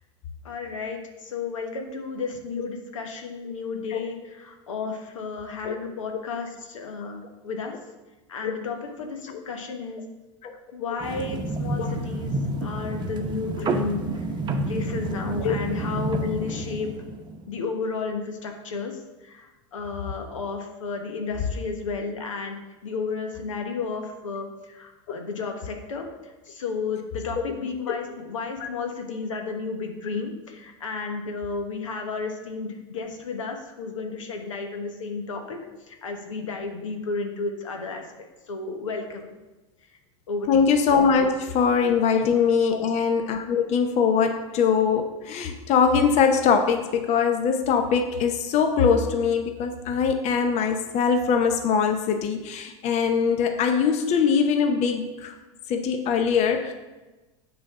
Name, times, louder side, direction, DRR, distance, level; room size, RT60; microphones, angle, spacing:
voice 1, 0.4-7.2 7.4-7.7 8.3-10.0 10.7-12.3 12.6-14.2 14.7-16.9 17.5-18.9 19.2-35.6 35.9-38.0 38.5-39.3 40.3-40.7 42.7-42.8, left 4 dB, 85° left, 3 dB, 1.2 m, -32 dB
sound 1, 11.0-17.5, right 2 dB, 30° right, 0.9 m, -29 dB
voice 2, 40.5-55.3 55.7-56.7, left 6 dB, 45° left, 6 dB, 0.9 m, -22 dB
7.7 x 4.1 x 6.0 m, 1.1 s
hypercardioid pair, 100°, 16 cm